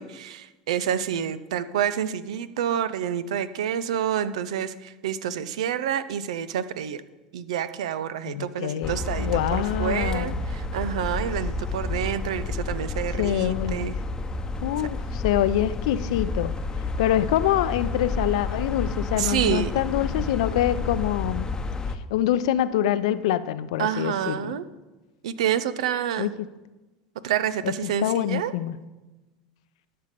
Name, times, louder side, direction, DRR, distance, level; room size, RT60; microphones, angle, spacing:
voice 1, 0.0-7.0 7.3-14.0 19.2-19.7 23.8-24.6 25.2-26.3 27.2-28.5, right 9 dB, 80° right, 14 dB, 0.6 m, -28 dB
voice 2, 8.3-10.4 13.2-13.9 14.6-16.5 17.0-21.4 22.1-24.5 26.2-26.3 27.6-27.7 28.0-28.7, left 12 dB, 75° left, 14 dB, 0.6 m, -25 dB
sound 1, 8.8-22.0, left 3 dB, 20° left, 0.9 m, -30 dB
Bass guitar, 22.7-23.0, right 3 dB, 50° right, 4.5 m, -51 dB
12.0 x 5.6 x 6.6 m, 1.1 s
hypercardioid pair, 90°, 3 cm